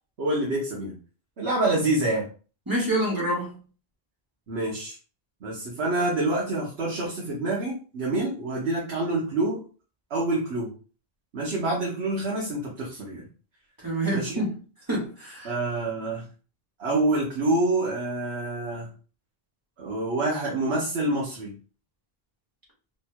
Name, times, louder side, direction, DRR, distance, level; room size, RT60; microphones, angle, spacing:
voice 1, 0.2-0.9 1.4-2.3 4.5-5.0 5.4-9.6 10.1-10.7 11.3-13.3 14.1-14.5 15.4-16.2 16.8-18.9 19.8-21.6, right 2 dB, 85° right, -4 dB, 1.3 m, -27 dB
voice 2, 2.7-3.6 13.8-14.6 14.9-15.5, right 1 dB, 20° right, -5 dB, 1.8 m, -27 dB
4.3 x 3.4 x 2.2 m, 0.37 s
omnidirectional pair, 1.0 m